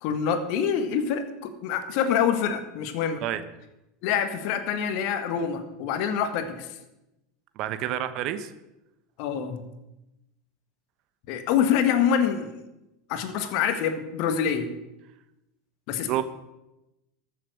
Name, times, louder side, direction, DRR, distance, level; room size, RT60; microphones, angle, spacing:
voice 1, 0.0-3.2 4.0-6.7 9.2-9.6 11.3-12.5 13.1-14.7 15.9-16.2, left 8 dB, 60° left, 9 dB, 1.5 m, -26 dB
voice 2, 7.6-8.5 16.1-16.2, right 12 dB, 50° right, 12 dB, 1.0 m, -28 dB
14.0 x 7.2 x 6.6 m, 0.95 s
hypercardioid pair, 85°, 0 cm